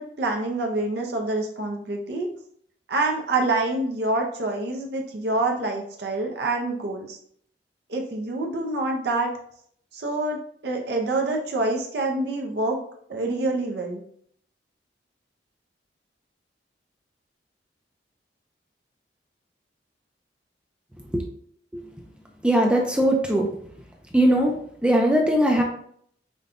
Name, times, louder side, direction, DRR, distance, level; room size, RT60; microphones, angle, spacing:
voice 1, 0.0-2.3 2.9-7.2 7.9-9.3 9.9-12.8 13.1-14.0, right 2 dB, 65° right, 1 dB, 0.6 m, -26 dB
voice 2, 22.4-23.5 24.1-24.6 24.8-25.6, right 1 dB, 5° right, 1 dB, 0.4 m, -20 dB
5.1 x 2.2 x 2.5 m, 0.63 s
head